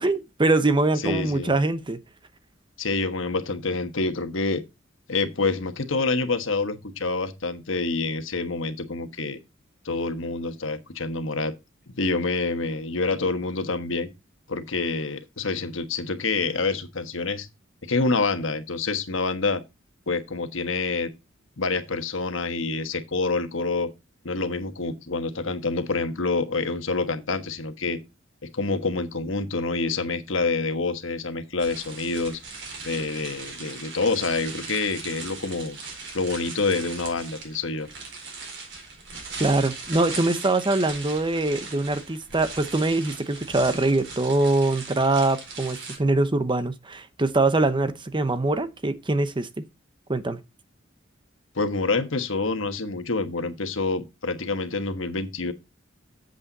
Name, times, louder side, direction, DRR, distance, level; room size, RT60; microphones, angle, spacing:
voice 1, 0.0-2.0 39.4-49.5 50.1-50.4, right 2 dB, 25° right, 0.8 m, -23 dB
voice 2, 1.0-1.5 2.8-4.6 5.1-9.4 9.8-11.5 11.9-14.1 14.5-17.5 17.8-19.6 20.1-21.1 21.6-23.9 24.2-28.0 28.5-32.4 32.8-35.8 36.1-37.9 51.5-55.5, left 3 dB, 70° left, 1.4 m, -27 dB
sound 1, 31.6-46.0, right 4 dB, 60° right, 4.4 m, -39 dB
8.6 x 7.9 x 4.1 m
head